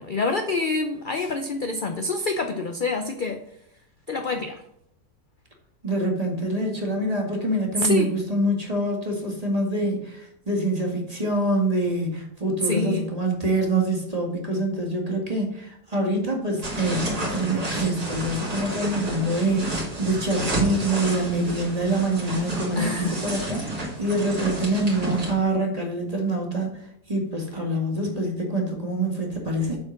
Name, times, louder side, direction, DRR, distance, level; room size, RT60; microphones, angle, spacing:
voice 1, 0.0-3.4 4.1-4.6 7.8-8.1 12.6-13.1 22.8-23.2, left 2 dB, 60° left, 6 dB, 0.5 m, -26 dB
voice 2, 5.8-26.8 27.1-29.8, right 1 dB, 25° right, 0 dB, 1.9 m, -25 dB
sound 1, 16.6-25.3, right 1 dB, 70° right, 3.4 m, -31 dB
8.3 x 4.3 x 6.3 m, 0.75 s
omnidirectional pair, 1.7 m